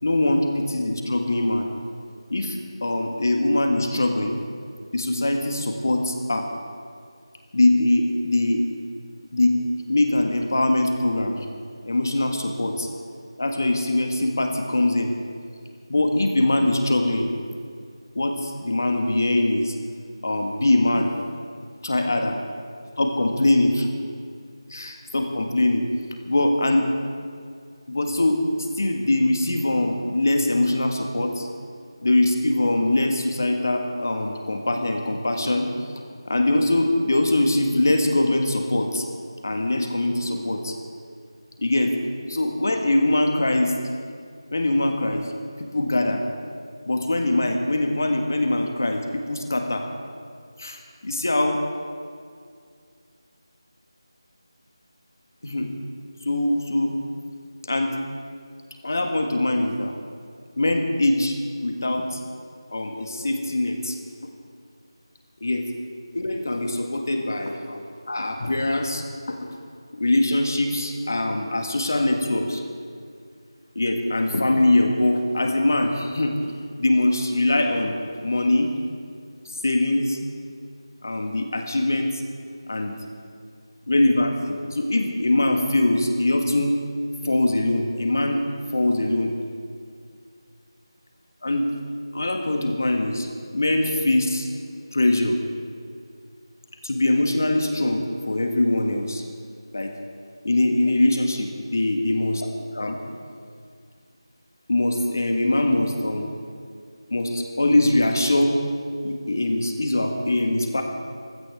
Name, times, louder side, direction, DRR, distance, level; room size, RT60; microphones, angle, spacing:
voice 1, 0.0-1.7 2.3-4.4 4.9-6.5 7.5-8.6 9.3-9.6 9.9-11.4 11.9-12.9 13.4-15.1 15.9-17.3 18.1-19.7 20.2-21.1 21.8-22.4 23.0-23.9 24.7-25.8 26.2-26.9 27.9-31.3 32.0-35.6 36.2-39.0 39.4-40.7 41.6-42.0 42.3-43.7 44.5-45.3 45.6-46.2 46.9-49.8 50.6-51.6 55.4-55.7 56.2-56.9 57.7-57.9 58.8-59.9 60.6-61.3 61.6-62.2 62.7-64.0 64.2-64.3 65.4-65.6 66.1-69.5 69.9-72.6 73.7-76.3 76.8-78.0 78.2-78.7 79.6-80.2 81.0-82.1 82.7-82.9 83.9-86.8 87.2-88.4 88.7-89.3 91.4-91.7 92.1-93.3 93.5-94.5 94.9-95.4 96.8-99.2 99.7-99.9 100.4-101.3 101.7-102.5 102.7-103.0 104.7-106.3 107.1-108.6 109.0-110.8, left 1 dB, 35° left, 4 dB, 1.6 m, -22 dB
23.5 x 16.0 x 3.6 m, 2.2 s
figure-of-eight pair, 180°, 3 cm